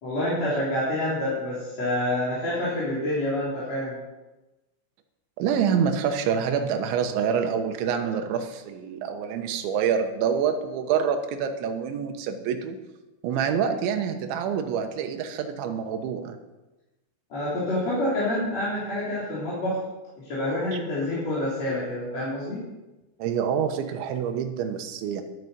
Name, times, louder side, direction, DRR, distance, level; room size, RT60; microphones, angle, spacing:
voice 1, 0.0-4.0 17.3-19.8 20.2-22.6, left 1 dB, 35° left, -9 dB, 4.2 m, -27 dB
voice 2, 5.4-12.8 13.2-16.4 23.2-25.2, right 7 dB, 80° right, 6 dB, 3.3 m, -26 dB
12.5 x 9.1 x 6.8 m, 1.1 s
omnidirectional pair, 5.6 m